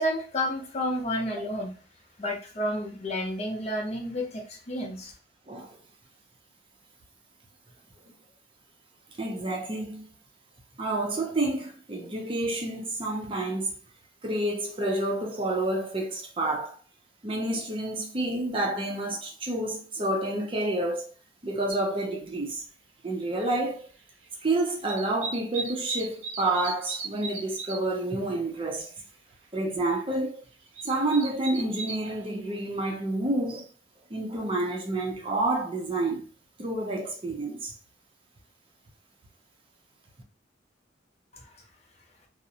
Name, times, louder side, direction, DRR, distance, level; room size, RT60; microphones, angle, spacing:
voice 1, 0.0-1.7 2.2-5.1 41.3-41.5, equal, 35° left, 0.6 m, -30 dB
voice 2, 9.2-10.0 10.8-13.7 14.2-16.8 17.2-21.1 21.4-22.6 23.0-23.9 24.4-28.9 29.5-30.4 30.8-33.6 34.1-36.3 36.6-37.7, right 2 dB, 30° right, 0.5 m, -29 dB
sound 1, 21.7-21.8 23.2-23.3 23.6-24.4 24.7-28.0 28.4-28.5 28.6-29.0 29.4-29.5 30.4-32.1 32.7-32.8, right 4 dB, 90° right, 0.6 m, -37 dB
2.5 x 2.0 x 2.7 m
head